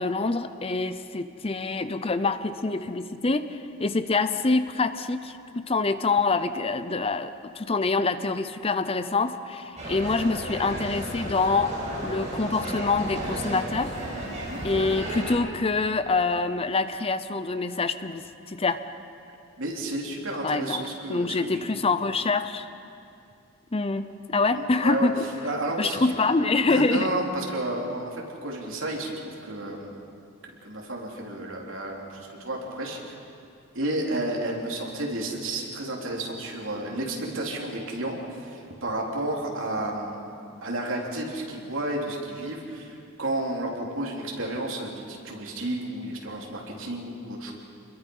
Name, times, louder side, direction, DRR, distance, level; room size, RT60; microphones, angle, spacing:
voice 1, 0.0-11.7 12.0-14.0 14.6-18.8 20.4-20.8 21.1-22.7 23.7-24.0 24.3-25.1 25.8-27.1, left 3 dB, 30° left, 11 dB, 0.6 m, -25 dB
sound 1, 9.8-15.3, right 1 dB, 35° right, 6.6 m, -33 dB
voice 2, 19.6-21.8 24.5-25.1 25.4-26.1 26.7-30.0 30.4-33.2 33.7-40.3 40.6-47.5, right 1 dB, 65° right, -1 dB, 3.6 m, -32 dB
27.5 x 21.5 x 5.6 m, 2.5 s
head